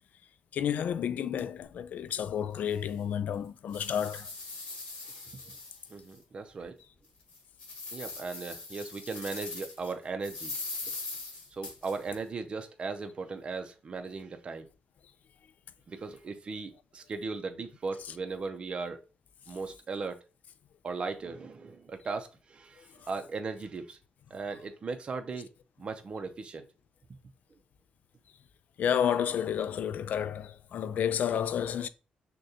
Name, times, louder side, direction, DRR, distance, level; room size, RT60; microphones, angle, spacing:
voice 1, 0.5-4.3 23.0-23.1 28.8-31.9, left 9 dB, 60° left, 0.3 m, -31 dB
sound 1, 2.1-2.2 2.7-2.8 3.3-6.2 6.6-6.7 7.2-9.9 10.2-12.2, left 3 dB, 35° left, 2.2 m, -41 dB
voice 2, 5.1-5.5 5.9-6.7 7.9-10.5 11.5-14.7 15.9-19.0 19.5-20.2 20.8-24.0 24.3-25.5 25.8-26.6, right 4 dB, 35° right, 0.5 m, -37 dB
6.3 x 2.2 x 2.8 m
cardioid pair, 140°, 3 cm